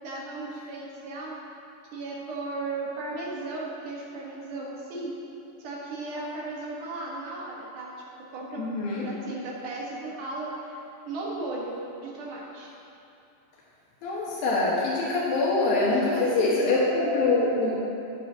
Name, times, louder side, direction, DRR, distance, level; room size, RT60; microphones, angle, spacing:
voice 1, 0.0-1.4 1.9-5.2 5.6-7.9 8.3-8.7 9.0-10.8 11.1-12.7 16.1-16.8, right 2 dB, 65° right, -4 dB, 2.8 m, -36 dB
voice 2, 8.6-9.1 14.0-17.7, left 3 dB, 80° left, -6 dB, 3.2 m, -24 dB
17.5 x 7.3 x 2.8 m, 2.8 s
omnidirectional pair, 4.1 m